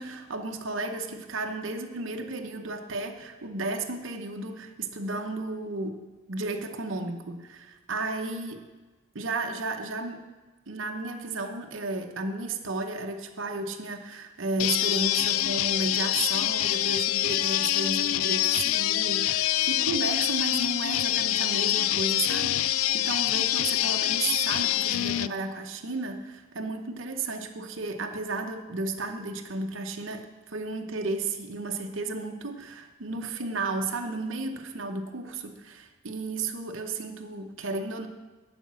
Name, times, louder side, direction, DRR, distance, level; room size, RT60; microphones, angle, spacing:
voice 1, 0.0-6.0 6.3-8.7 9.1-10.2 10.7-38.1, right 3 dB, 65° right, 4 dB, 0.9 m, -33 dB
sound 1, 14.6-25.3, left 14 dB, 75° left, 0.3 m, -25 dB
11.5 x 5.2 x 7.5 m, 1.3 s
head